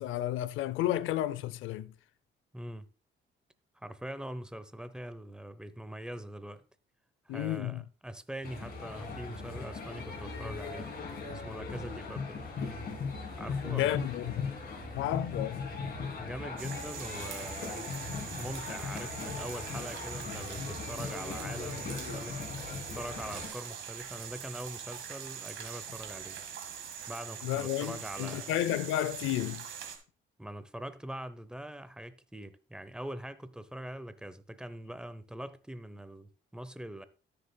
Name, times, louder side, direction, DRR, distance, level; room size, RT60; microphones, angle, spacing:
voice 1, 0.0-1.9 7.3-7.8 13.6-14.5 14.9-15.6 27.4-29.6, left 13 dB, 85° left, 0.5 m, -32 dB
voice 2, 2.5-2.9 3.7-6.6 7.3-10.9 11.3-12.4 13.4-14.0 16.1-17.9 18.4-22.4 22.9-26.4 27.1-28.6 30.4-37.1, right 1 dB, 5° right, 0.7 m, -43 dB
sound 1, 8.4-23.5, left 4 dB, 50° left, 2.7 m, -39 dB
sound 2, 16.6-30.0, right 8 dB, 70° right, 1.7 m, -43 dB
13.5 x 6.7 x 2.2 m
cardioid pair, 90°, 20 cm